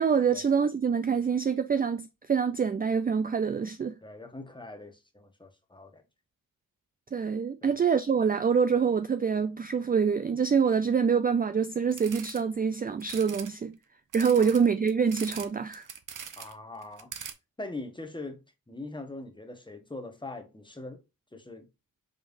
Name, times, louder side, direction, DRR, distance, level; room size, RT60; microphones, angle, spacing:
voice 1, 0.0-3.9 7.1-13.7 14.1-15.9, right 6 dB, 25° right, 0.3 m, -26 dB
voice 2, 4.0-6.0 7.6-7.8 14.4-14.5 16.4-17.1 17.6-18.4 18.7-21.0 21.3-21.7, left 2 dB, 15° left, 1.1 m, -42 dB
sound 1, 11.9-12.4 13.0-13.5 14.1-15.5 15.7-16.5 16.8-17.3, right 7 dB, 60° right, 0.7 m, -41 dB
5.1 x 3.4 x 2.6 m
wide cardioid pair, 85°, 35 cm